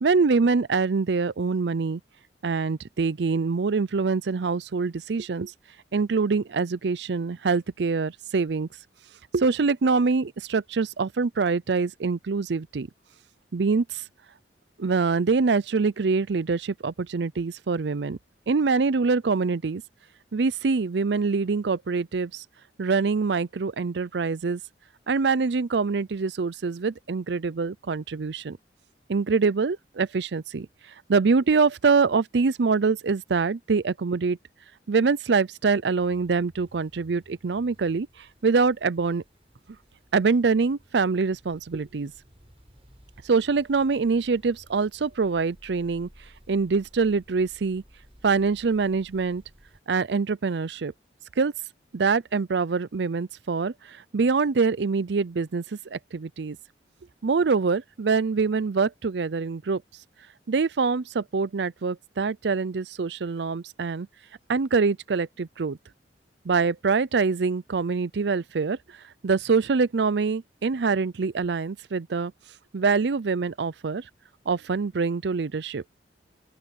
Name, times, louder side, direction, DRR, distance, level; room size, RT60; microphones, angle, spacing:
voice 1, 0.0-2.0 2.4-5.5 5.9-8.7 9.3-12.9 13.5-14.0 14.8-18.2 18.5-19.8 20.3-22.4 22.8-24.6 25.1-28.6 29.1-30.7 31.1-34.4 34.9-38.1 38.4-39.2 40.1-42.1 43.2-46.1 46.5-47.8 48.2-49.4 49.9-50.9 51.4-51.5 51.9-55.6 55.9-56.6 57.2-59.8 60.5-64.1 64.5-65.8 66.4-68.8 69.2-72.3 72.7-74.0 74.5-75.8, right 4 dB, 70° right, 0.5 m, -24 dB
sound 1, 36.0-49.8, equal, 35° right, 7.0 m, -56 dB
open air
head